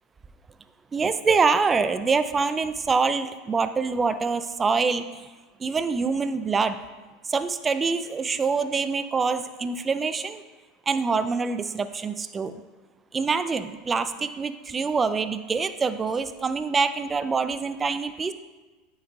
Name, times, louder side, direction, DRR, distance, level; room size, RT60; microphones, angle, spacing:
voice 1, 0.9-5.3 5.6-6.8 7.2-10.4 10.9-12.5 13.1-18.3, right 4 dB, 25° right, 11 dB, 0.4 m, -25 dB
9.2 x 3.2 x 3.6 m, 1.2 s
hypercardioid pair, 90°, 0 cm